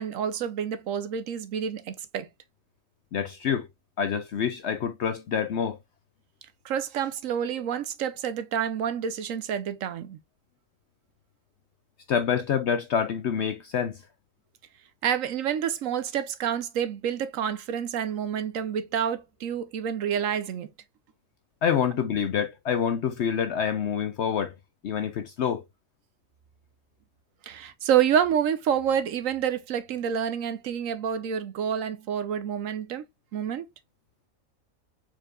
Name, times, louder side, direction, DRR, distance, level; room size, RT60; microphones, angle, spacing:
voice 1, 0.0-2.3 6.6-10.2 15.0-20.7 27.5-33.0 33.3-33.7, right 8 dB, 75° right, 1.1 m, -28 dB
voice 2, 3.1-3.7 4.0-5.8 12.1-14.0 21.6-24.5 24.8-25.6, left 7 dB, 65° left, 0.8 m, -27 dB
4.6 x 4.5 x 2.4 m
omnidirectional pair, 1.4 m